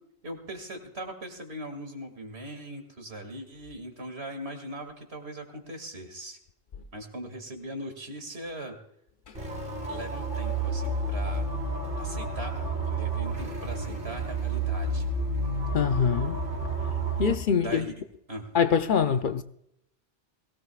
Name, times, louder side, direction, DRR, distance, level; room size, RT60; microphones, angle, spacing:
voice 1, 0.2-6.4 6.9-8.8 9.9-11.5 12.0-15.1 17.6-17.9 18.3-18.5, right 1 dB, 75° right, 2.6 m, -40 dB
sound 1, 9.3-17.3, right 2 dB, 55° right, 2.5 m, -30 dB
voice 2, 15.7-16.4 17.2-17.9 18.5-19.4, left 7 dB, 55° left, 0.8 m, -24 dB
22.0 x 17.0 x 2.4 m
omnidirectional pair, 1.1 m